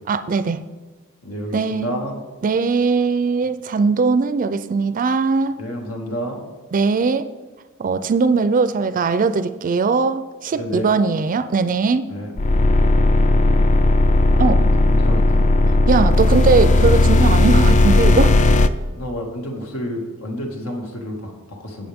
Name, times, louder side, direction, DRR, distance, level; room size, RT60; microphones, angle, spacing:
voice 1, 0.1-0.6 1.5-1.9 2.4-5.6 6.7-7.3 7.8-12.1 14.4-14.6 15.9-18.4, right 4 dB, 40° right, 12 dB, 0.4 m, -20 dB
voice 2, 1.2-2.1 5.6-6.4 10.5-10.9 12.1-12.3 14.3-15.6 18.9-21.9, equal, 85° left, 1 dB, 2.1 m, -30 dB
sound 1, 12.4-18.7, left 2 dB, 35° left, 0.4 m, -15 dB
18.0 x 6.4 x 3.6 m, 1.3 s
head